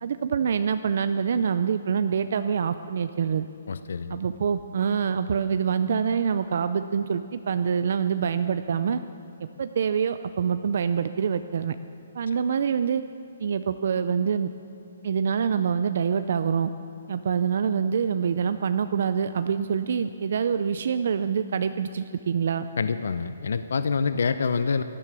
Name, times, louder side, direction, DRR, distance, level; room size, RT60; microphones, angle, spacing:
voice 1, 0.0-3.5 4.1-9.0 9.4-11.8 12.1-13.0 13.4-14.5 15.0-16.7 17.1-22.7, right 7 dB, 45° right, 11 dB, 0.4 m, -25 dB
voice 2, 3.7-4.2 22.8-24.8, left 5 dB, 65° left, 11 dB, 0.6 m, -26 dB
18.5 x 12.5 x 6.1 m, 2.7 s
hypercardioid pair, 180°, 0 cm